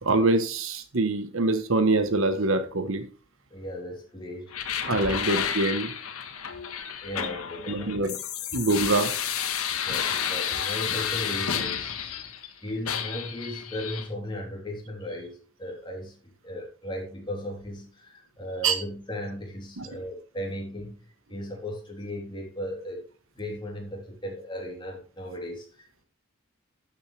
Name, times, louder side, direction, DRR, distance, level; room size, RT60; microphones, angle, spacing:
voice 1, 0.0-3.1 4.9-5.9 7.7-8.1 8.5-9.2 18.6-18.8 19.8-19.9, right 2 dB, 70° right, 1.1 m, -24 dB
voice 2, 3.5-4.5 5.1-5.2 7.0-7.9 9.8-23.0 23.3-26.1, left 1 dB, 20° left, 3.3 m, -37 dB
sound 1, 4.5-12.5 12.9-14.1, left 8 dB, 85° left, 1.4 m, -31 dB
11.5 x 7.6 x 3.3 m
head